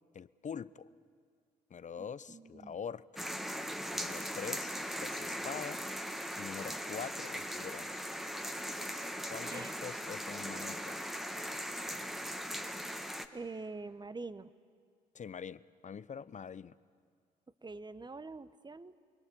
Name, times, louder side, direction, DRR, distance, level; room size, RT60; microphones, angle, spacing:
voice 1, 0.1-0.9 1.7-3.2 3.9-4.7 5.0-5.8 6.4-7.9 9.3-11.0 15.1-16.7, left 7 dB, 35° left, 18 dB, 0.7 m, -44 dB
voice 2, 2.0-2.8 9.5-9.7 13.3-14.5 17.6-18.9, right 3 dB, 20° right, 15 dB, 1.1 m, -45 dB
sound 1, 3.2-13.3, equal, ahead, 1.6 m, -39 dB
29.5 x 22.5 x 7.1 m, 2.1 s
hypercardioid pair, 50°, 21 cm